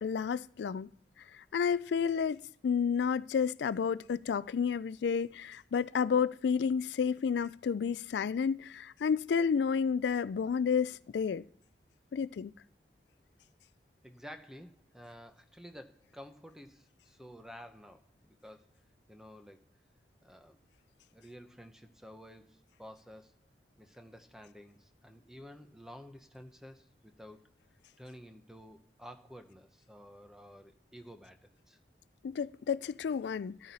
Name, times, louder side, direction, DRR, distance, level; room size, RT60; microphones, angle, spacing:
voice 1, 0.0-0.9 1.5-11.4 12.1-12.5 32.2-33.7, left 6 dB, 75° left, 0.3 m, -31 dB
voice 2, 14.0-18.7 19.1-19.6 20.2-20.6 21.1-23.3 23.8-27.4 28.0-31.8, equal, 5° right, 0.8 m, -51 dB
13.5 x 9.3 x 4.1 m
head